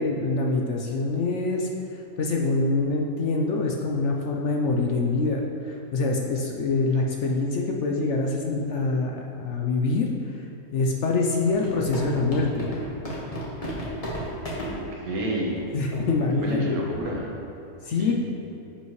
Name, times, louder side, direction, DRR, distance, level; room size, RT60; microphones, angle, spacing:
voice 1, 0.0-1.7 2.2-10.1 10.7-12.7 15.7-16.8 17.9-18.1, left 3 dB, 60° left, 0 dB, 0.8 m, -25 dB
sound 1, 11.6-14.7 15.5-15.6 15.9-16.0 16.3-16.5 16.9-17.1, equal, 25° left, 1.3 m, -33 dB
voice 2, 14.7-15.6 16.4-17.3 18.0-18.1, right 1 dB, 70° right, -3 dB, 1.6 m, -30 dB
10.0 x 5.6 x 3.1 m, 2.8 s
omnidirectional pair, 1.6 m